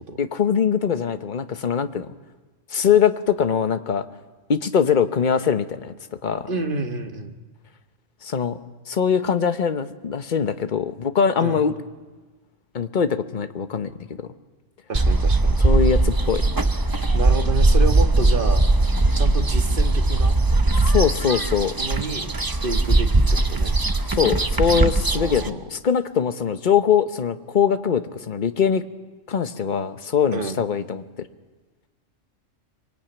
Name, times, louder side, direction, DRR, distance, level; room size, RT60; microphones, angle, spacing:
voice 1, 0.2-2.1 2.7-4.0 4.5-5.9 6.2-6.5 8.2-8.6 8.9-11.7 12.7-13.9 14.2-14.3 15.6-16.5 20.9-21.8 24.1-28.8 29.3-31.0, left 7 dB, 40° left, 10 dB, 1.1 m, -22 dB
voice 2, 6.5-7.4 11.4-11.6 14.9-15.6 17.1-18.6 19.2-20.4 21.8-23.8 25.1-25.6 30.3-30.6, right 3 dB, 45° right, 6 dB, 1.8 m, -29 dB
sound 1, 14.9-25.5, right 2 dB, 20° right, 0.7 m, -19 dB
24.5 x 22.0 x 9.2 m, 1.3 s
omnidirectional pair, 1.3 m